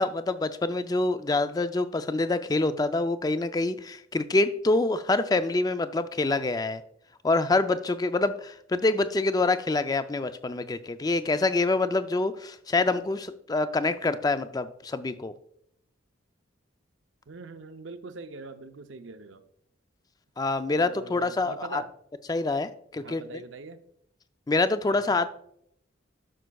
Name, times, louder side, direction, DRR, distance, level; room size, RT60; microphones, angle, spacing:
voice 1, 0.0-6.8 7.2-15.3 20.4-21.8 22.3-23.4 24.5-25.3, left 2 dB, 20° left, 12 dB, 0.3 m, -26 dB
voice 2, 17.3-19.4 20.7-21.9 23.0-23.8 24.9-25.2, right 4 dB, 65° right, 9 dB, 0.6 m, -42 dB
12.5 x 6.2 x 2.3 m, 0.71 s
head